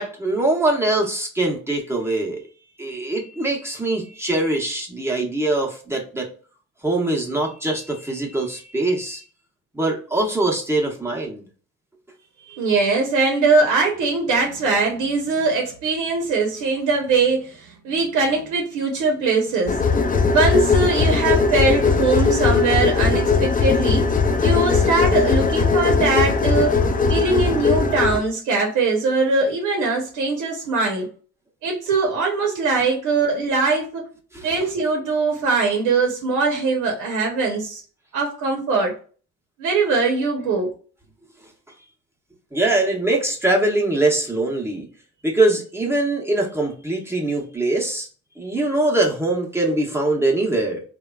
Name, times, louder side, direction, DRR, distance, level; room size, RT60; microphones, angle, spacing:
voice 1, 0.0-2.4 2.8-6.3 6.8-9.2 9.7-11.4 34.3-34.5 42.5-44.9 45.2-48.1 48.4-50.8, right 2 dB, 10° right, -2 dB, 0.8 m, -22 dB
voice 2, 12.5-19.8 20.3-24.0 24.4-26.8 27.1-31.1 31.6-34.0 34.4-37.8 38.1-38.9 39.6-40.7, right 3 dB, 85° right, 1 dB, 0.8 m, -21 dB
sound 1, 19.7-28.2, left 4 dB, 30° left, 0.4 m, -19 dB
3.0 x 2.2 x 2.2 m, 0.40 s
cardioid pair, 90°, 30 cm